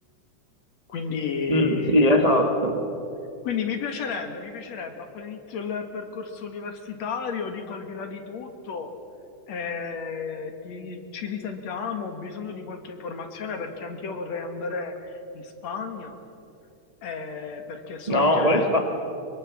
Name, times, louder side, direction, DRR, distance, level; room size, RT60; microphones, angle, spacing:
voice 1, 0.9-2.0 3.4-8.9 9.5-16.2 17.0-18.7, left 5 dB, 60° left, 6 dB, 2.8 m, -33 dB
voice 2, 1.5-2.8 18.1-18.8, left 1 dB, 20° right, 3 dB, 1.1 m, -20 dB
24.0 x 22.5 x 7.3 m, 2.7 s
omnidirectional pair, 3.6 m